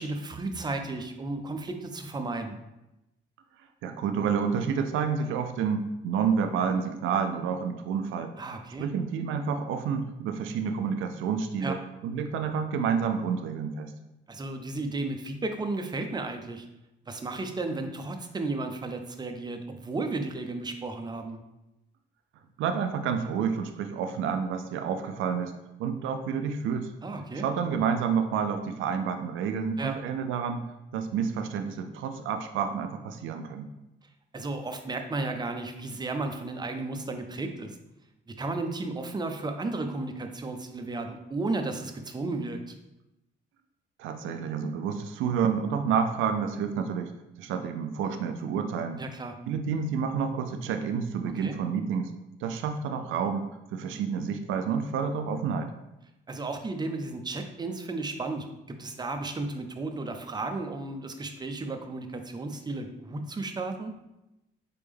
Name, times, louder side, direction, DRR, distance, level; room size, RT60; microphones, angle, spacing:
voice 1, 0.0-2.6 8.4-8.9 11.6-11.7 14.3-16.6 17.1-21.4 27.0-27.4 29.8-30.0 34.3-37.8 38.4-42.7 49.0-49.3 51.4-51.6 56.3-63.9, right 2 dB, 20° right, 6 dB, 0.5 m, -34 dB
voice 2, 3.8-8.3 8.8-13.9 22.6-25.5 25.8-26.9 27.3-30.6 30.9-33.7 44.0-47.1 47.4-49.0 49.5-52.1 52.4-55.7, right 6 dB, 80° right, 7 dB, 0.4 m, -29 dB
4.2 x 3.4 x 3.4 m, 0.93 s
cardioid pair, 90°, 20 cm